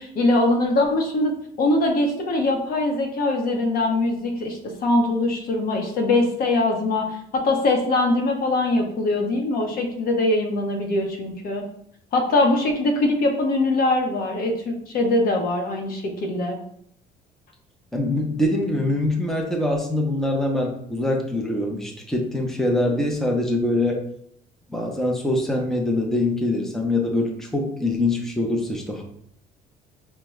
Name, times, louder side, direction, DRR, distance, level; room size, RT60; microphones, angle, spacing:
voice 1, 0.0-1.3 1.6-11.6 12.1-16.6, left 2 dB, 60° left, 2 dB, 0.9 m, -22 dB
voice 2, 17.9-24.0 24.7-29.0, left 1 dB, ahead, 0 dB, 0.6 m, -24 dB
4.7 x 2.2 x 3.1 m, 0.68 s
cardioid pair, 110°, 17 cm